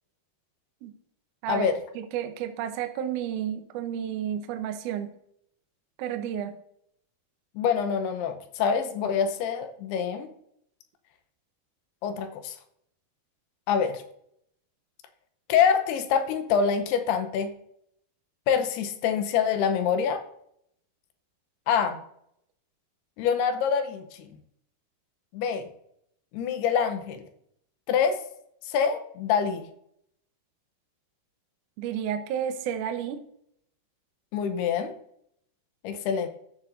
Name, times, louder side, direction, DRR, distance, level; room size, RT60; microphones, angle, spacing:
voice 1, 1.9-5.1 6.0-6.5 31.8-33.2, right 9 dB, 90° right, 7 dB, 1.8 m, -31 dB
voice 2, 7.6-10.3 12.0-12.5 13.7-14.0 15.5-17.5 18.5-20.2 21.7-22.0 23.2-24.0 25.3-25.7 26.3-27.3 27.9-28.2 28.7-29.7 34.3-34.9 35.8-36.3, left 7 dB, 90° left, 7 dB, 2.8 m, -25 dB
14.0 x 7.0 x 2.6 m, 0.72 s
omnidirectional pair, 4.7 m